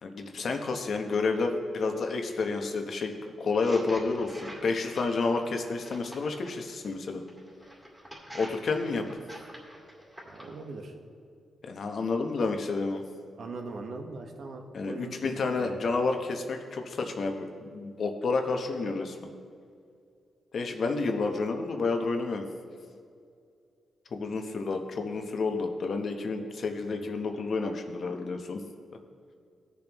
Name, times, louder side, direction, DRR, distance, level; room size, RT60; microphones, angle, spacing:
voice 1, 0.0-7.2 8.3-9.1 11.6-13.0 14.7-19.2 20.5-22.5 24.1-28.6, left 3 dB, 60° left, 5 dB, 1.0 m, -30 dB
sound 1, 3.5-6.6 7.3-10.6, equal, 5° right, 2.2 m, -47 dB
voice 2, 10.2-10.9 13.4-15.9 26.8-27.0, right 3 dB, 60° right, 3 dB, 1.2 m, -41 dB
16.5 x 7.0 x 3.1 m, 2.3 s
cardioid pair, 95°, 0 cm